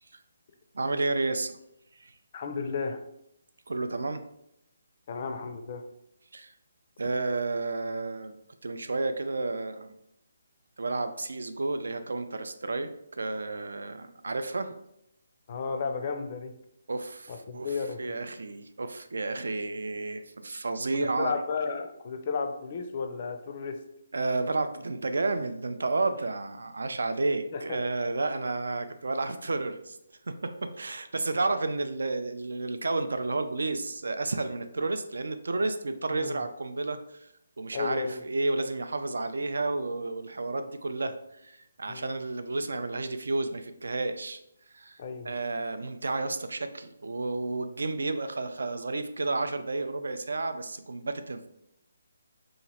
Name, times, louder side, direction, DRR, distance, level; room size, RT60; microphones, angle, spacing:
voice 1, 0.7-1.6 2.0-2.1 3.7-4.2 6.3-6.5 7.0-8.4 8.6-9.9 10.8-14.7 16.9-21.4 24.1-30.0 30.3-37.3 37.6-44.4 44.7-45.0 45.2-51.5, right 3 dB, 85° right, 9 dB, 0.4 m, -31 dB
voice 2, 2.3-3.0 5.1-5.8 15.5-16.5 17.3-18.2 21.0-23.8 27.5-27.8 36.1-36.4 37.7-38.2 41.9-42.1 45.0-45.4, left 5 dB, 30° left, 6 dB, 0.3 m, -33 dB
2.9 x 2.4 x 4.0 m, 0.78 s
hypercardioid pair, 175°, 0 cm